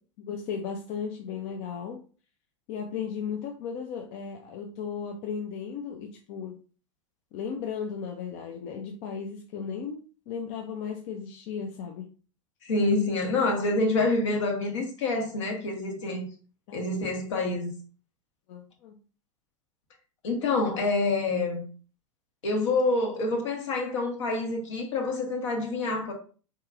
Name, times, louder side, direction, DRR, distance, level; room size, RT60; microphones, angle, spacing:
voice 1, 0.2-2.0 2.7-6.6 7.3-12.1 16.0-16.2 16.7-16.9 18.5-19.0, left 6 dB, 45° left, 0.5 m, -35 dB
voice 2, 12.6-16.2 16.7-17.7 20.2-21.6 22.4-26.1, left 2 dB, 65° left, 1.1 m, -27 dB
3.8 x 2.8 x 2.4 m
figure-of-eight pair, 90°, 17 cm